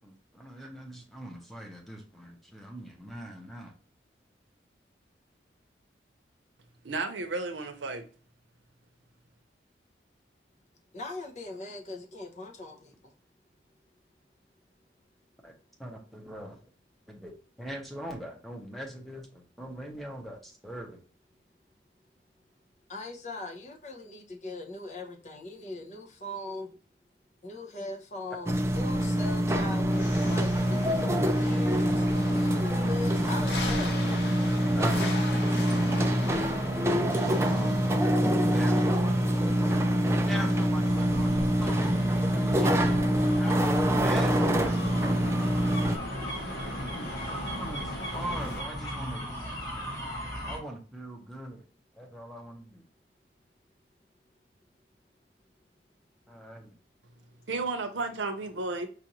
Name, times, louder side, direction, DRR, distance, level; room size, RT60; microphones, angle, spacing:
voice 1, 0.0-3.7 15.4-16.6 17.1-21.0 34.7-35.1 36.9-38.1 38.4-39.3 40.3-41.9 42.2-43.0 43.3-44.6 44.9-45.1 45.4-45.7 46.7-49.3 50.5-51.6 51.9-52.8 56.3-56.7, right 1 dB, ahead, 0.8 m, -41 dB
voice 2, 6.8-8.0 57.5-58.9, right 3 dB, 90° right, 0.7 m, -32 dB
voice 3, 10.9-13.1 22.9-26.7 27.4-32.1 32.3-34.0 36.4-36.5, left 2 dB, 40° left, 0.7 m, -40 dB
sound 1, 28.5-46.0, equal, 15° right, 0.3 m, -25 dB
sound 2, 29.9-48.6, left 1 dB, 70° left, 0.9 m, -39 dB
sound 3, 40.9-50.6, equal, 20° left, 1.7 m, -38 dB
5.2 x 2.5 x 2.9 m
head